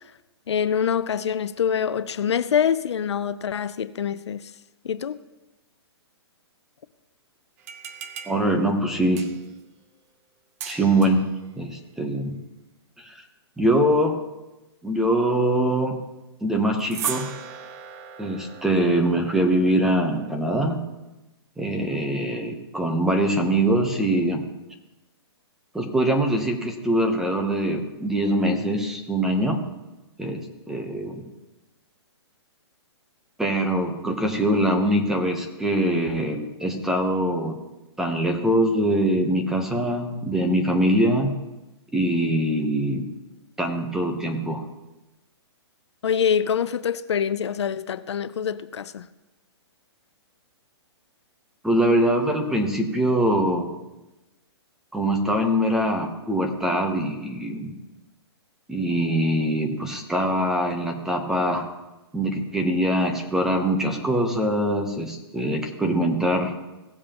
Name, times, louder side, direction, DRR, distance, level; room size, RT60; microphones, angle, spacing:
voice 1, 0.5-4.4 4.8-5.2 46.0-49.0, left 7 dB, 85° left, 0.6 m, -25 dB
sound 1, 7.6-9.6 10.6-11.3 16.8-20.4, right 8 dB, 35° right, 0.7 m, -38 dB
voice 2, 8.3-9.2 10.7-12.4 13.0-13.2 13.6-14.2 14.8-16.0 16.4-17.3 18.2-20.8 21.6-24.4 25.7-29.6 30.2-31.3 33.4-37.6 38.0-41.4 41.9-43.1 43.6-44.7 51.6-53.7 54.9-57.7 58.7-61.7 62.1-66.5, right 1 dB, 5° right, 0.9 m, -23 dB
17.0 x 7.4 x 3.0 m
hypercardioid pair, 155°, 14 cm